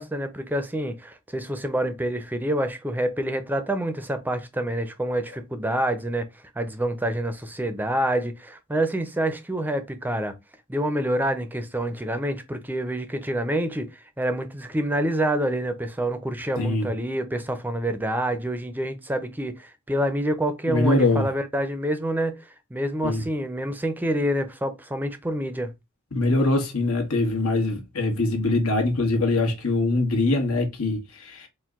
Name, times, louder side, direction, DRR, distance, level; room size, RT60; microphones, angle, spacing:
voice 1, 0.0-6.3 6.6-10.4 10.7-13.9 14.2-22.4 22.7-25.7, right 1 dB, 10° right, 0.5 m, -27 dB
voice 2, 16.6-16.9 20.7-21.3 23.0-23.2 26.1-31.5, left 2 dB, 80° left, 1.3 m, -23 dB
4.5 x 2.2 x 3.6 m
head